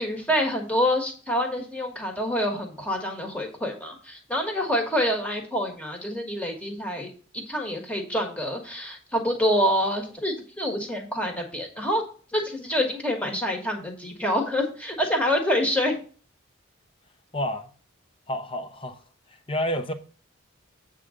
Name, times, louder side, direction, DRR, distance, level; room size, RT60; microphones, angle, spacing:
voice 1, 0.0-12.0 12.3-16.0, equal, 5° left, 1.5 m, -27 dB
voice 2, 17.3-17.7 18.3-19.0 19.5-19.9, equal, 25° left, 0.8 m, -29 dB
8.3 x 3.7 x 6.4 m
head